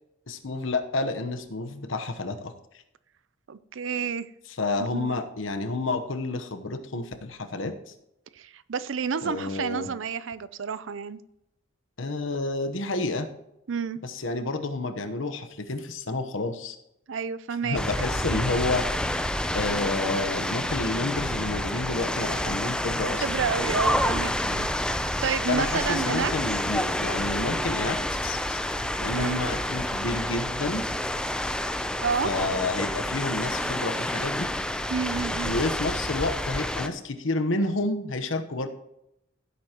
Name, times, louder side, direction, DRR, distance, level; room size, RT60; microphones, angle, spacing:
voice 1, 0.3-2.5 4.6-7.9 9.2-9.9 12.0-13.3 14.0-16.8 17.6-18.9 19.5-23.3 25.5-30.9 32.2-34.5 35.4-38.7, left 2 dB, 75° left, 1.0 m, -30 dB
voice 2, 3.5-4.3 4.9-5.1 8.4-11.2 13.7-14.0 17.1-17.8 18.7-18.8 23.2-26.3 29.1-29.4 32.0-32.3 34.9-35.5, right 6 dB, 70° right, 0.5 m, -30 dB
sound 1, 17.7-36.9, left 1 dB, 5° left, 0.5 m, -29 dB
sound 2, 19.0-27.2, equal, 85° right, 2.6 m, -45 dB
15.5 x 8.4 x 3.0 m
head